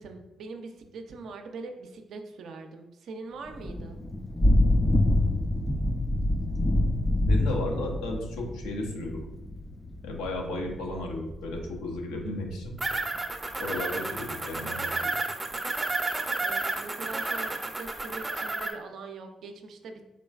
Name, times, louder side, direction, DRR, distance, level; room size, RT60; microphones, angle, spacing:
voice 1, 0.0-4.0 16.4-20.0, right 3 dB, 70° right, 5 dB, 0.5 m, -42 dB
Thunder / Rain, 3.5-13.0, left 1 dB, 20° left, 0.4 m, -27 dB
voice 2, 7.3-9.2 10.0-12.8 13.6-15.2, left 2 dB, 85° left, 0 dB, 0.7 m, -34 dB
sound 1, 12.8-18.7, right 2 dB, 25° right, 0.6 m, -31 dB
3.7 x 3.1 x 2.3 m, 0.94 s
hypercardioid pair, 45°, 0 cm